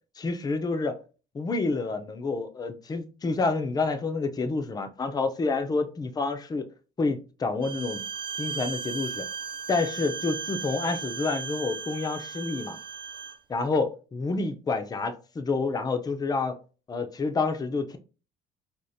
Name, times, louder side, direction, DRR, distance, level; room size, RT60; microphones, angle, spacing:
voice 1, 0.2-1.0 1.3-6.7 7.0-8.0 8.4-9.3 9.7-12.8 13.5-16.6 16.9-18.0, left 3 dB, 25° left, 0.5 m, -28 dB
Bowed string instrument, 7.6-13.4, right 6 dB, 30° right, 0.4 m, -36 dB
4.9 x 2.5 x 2.7 m
cardioid pair, 110°, 17 cm